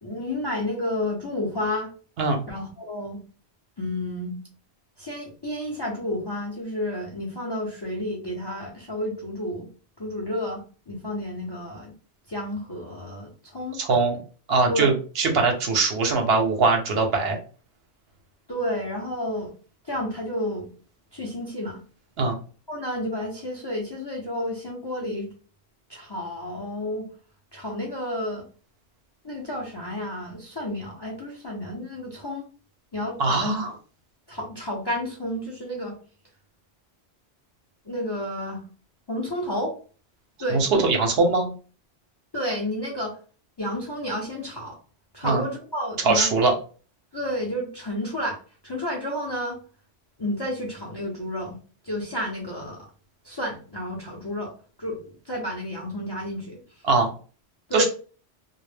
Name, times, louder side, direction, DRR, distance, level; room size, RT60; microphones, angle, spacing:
voice 1, 0.0-1.9 2.5-3.2 3.8-4.4 5.0-9.7 10.0-11.9 12.3-13.8 14.7-14.9 18.5-19.5 19.8-20.7 21.1-21.8 22.7-25.3 25.9-27.1 27.5-28.4 29.2-32.5 32.9-33.7 34.3-36.0 37.9-38.6 39.1-39.8 40.4-40.8 42.3-43.2 43.6-44.8 45.1-46.3 47.1-48.4 48.6-49.6 50.2-51.6 51.8-52.9 53.2-54.5 54.8-56.6 57.7-57.8, left 1 dB, 35° left, -1 dB, 0.4 m, -31 dB
voice 2, 13.7-14.2 14.5-17.4 22.2-22.4 33.2-33.7 40.5-41.5 45.2-45.4 46.0-46.5 56.8-57.1 57.7-57.8, right 3 dB, 70° right, 3 dB, 0.8 m, -21 dB
2.2 x 2.0 x 3.2 m, 0.38 s
omnidirectional pair, 1.1 m